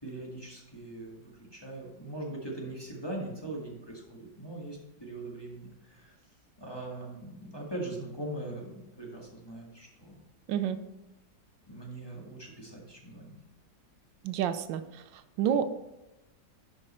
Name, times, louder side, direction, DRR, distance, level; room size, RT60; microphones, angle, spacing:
voice 1, 0.0-6.1 6.6-10.2 11.7-13.3, right 1 dB, 15° left, -3 dB, 1.6 m, -41 dB
voice 2, 10.5-10.8 14.2-14.8 15.4-15.7, right 8 dB, 90° right, 11 dB, 1.4 m, -28 dB
11.0 x 5.3 x 4.3 m, 0.97 s
omnidirectional pair, 2.0 m